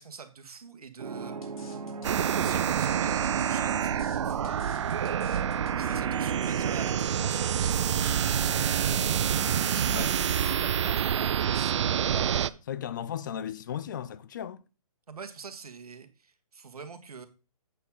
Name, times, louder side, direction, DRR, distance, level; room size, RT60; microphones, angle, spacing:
voice 1, 0.0-1.4 2.3-5.2 5.7-9.0 9.7-12.6 15.1-17.3, right 5 dB, 90° right, 1.6 m, -44 dB
sound 1, 1.0-10.6, right 5 dB, 70° right, 1.3 m, -38 dB
sound 2, 1.4-8.4, left 3 dB, 70° left, 2.7 m, -52 dB
sound 3, 2.0-12.5, right 9 dB, 50° right, 0.4 m, -27 dB
voice 2, 12.7-14.6, left 9 dB, 35° left, 0.5 m, -35 dB
8.2 x 4.7 x 5.5 m
hypercardioid pair, 165°, 19 cm